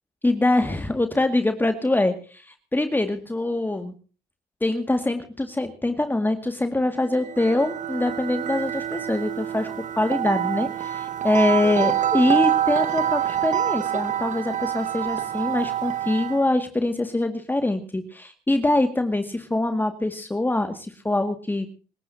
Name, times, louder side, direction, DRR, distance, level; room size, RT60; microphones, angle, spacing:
voice 1, 0.2-3.9 4.6-9.7 10.0-21.7, left 2 dB, 10° left, 7 dB, 2.1 m, -24 dB
sound 1, 7.0-16.5, right 11 dB, 55° right, 1.3 m, -26 dB
27.5 x 15.5 x 2.8 m, 0.38 s
cardioid pair, 85°, 16 cm